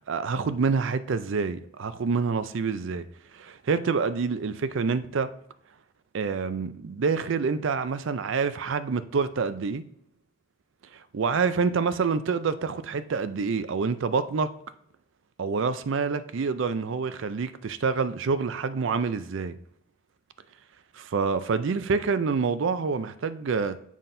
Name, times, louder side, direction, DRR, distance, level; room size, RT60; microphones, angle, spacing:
voice 1, 0.0-3.1 3.3-5.3 6.1-9.8 11.1-14.5 15.4-19.6 20.9-23.8, right 5 dB, 60° right, 0.4 m, -27 dB
7.3 x 5.6 x 2.7 m
head